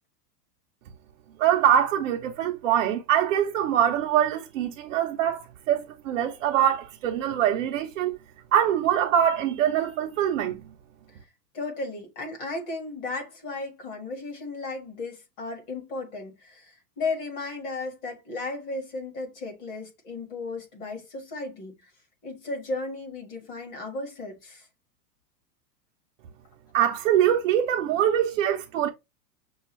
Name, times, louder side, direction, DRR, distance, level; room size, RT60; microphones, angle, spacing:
voice 1, 1.4-8.2 8.5-10.6 26.7-28.9, right 10 dB, 55° right, 0.6 m, -23 dB
voice 2, 11.5-21.9 22.2-24.7, left 3 dB, 35° left, 1.5 m, -35 dB
6.1 x 2.3 x 3.1 m
supercardioid pair, 165°, 48 cm